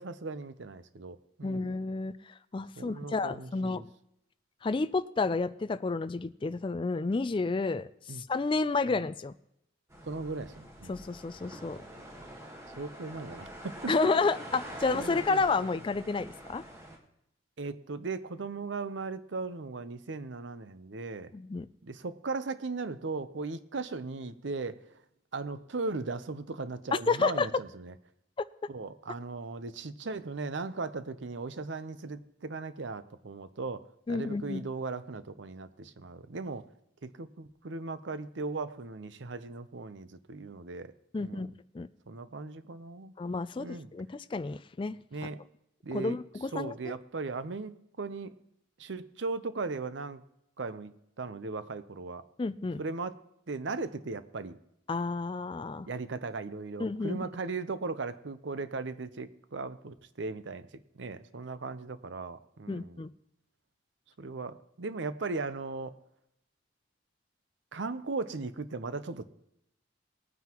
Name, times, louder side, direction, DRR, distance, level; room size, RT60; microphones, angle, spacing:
voice 1, 0.0-1.8 2.8-3.8 8.1-8.2 8.9-9.0 10.1-11.0 12.8-14.1 14.9-15.4 17.6-21.3 21.8-24.8 25.3-27.9 28.7-33.8 34.1-36.6 37.0-40.9 41.2-41.5 42.1-43.1 43.6-43.9 45.1-45.4 45.8-46.2 46.5-48.3 48.8-50.2 50.6-52.2 52.8-53.2 53.5-54.6 55.8-60.7 60.9-63.0 64.2-65.9 67.7-69.3, right 3 dB, 70° right, 12 dB, 0.7 m, -37 dB
voice 2, 1.4-3.8 4.6-9.3 10.9-11.8 13.9-16.6 21.3-21.7 26.9-27.5 34.1-34.6 41.1-41.9 43.2-45.0 45.9-46.9 52.4-52.8 54.9-55.9 56.8-57.3 62.7-63.1, left 4 dB, 25° left, 13 dB, 0.3 m, -31 dB
sound 1, 9.9-17.0, right 1 dB, 15° right, 1.4 m, -45 dB
19.5 x 9.4 x 3.0 m, 0.80 s
head